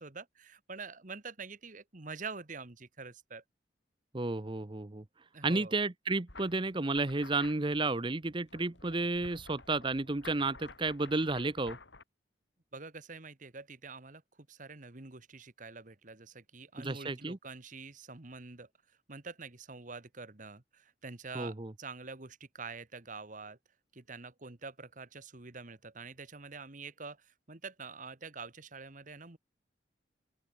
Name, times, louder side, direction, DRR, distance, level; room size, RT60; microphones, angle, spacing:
voice 1, 0.0-3.4 5.3-5.7 12.7-14.2 14.5-18.7 19.1-23.6 23.9-29.4, right 4 dB, 45° right, 1.5 m, -46 dB
voice 2, 4.1-5.0 5.4-11.8 16.8-17.4 21.3-21.7, right 3 dB, 25° right, 0.8 m, -32 dB
sound 1, 6.3-12.0, left 3 dB, 75° left, 3.5 m, -53 dB
open air
head